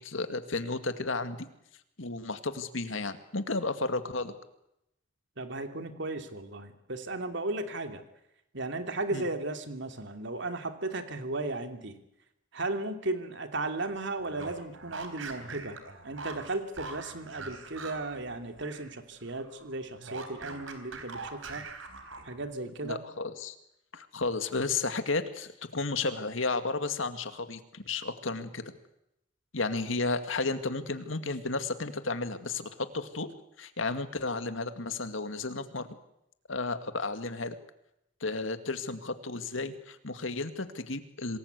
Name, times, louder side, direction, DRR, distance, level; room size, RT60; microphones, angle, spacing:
voice 1, 0.0-1.4 2.0-4.3 9.1-9.2 22.8-23.5 23.9-28.6 29.5-33.3 33.6-35.9 36.5-37.6 38.2-41.4, left 3 dB, 75° left, 9 dB, 2.2 m, -33 dB
voice 2, 5.4-8.0 8.5-12.0 12.5-15.8 16.0-21.6 22.2-23.0, right 2 dB, 65° right, 7 dB, 2.9 m, -35 dB
sound 1, 14.2-18.9 19.2-22.5, right 4 dB, 85° right, 4.1 m, -43 dB
27.0 x 20.5 x 8.3 m, 0.82 s
head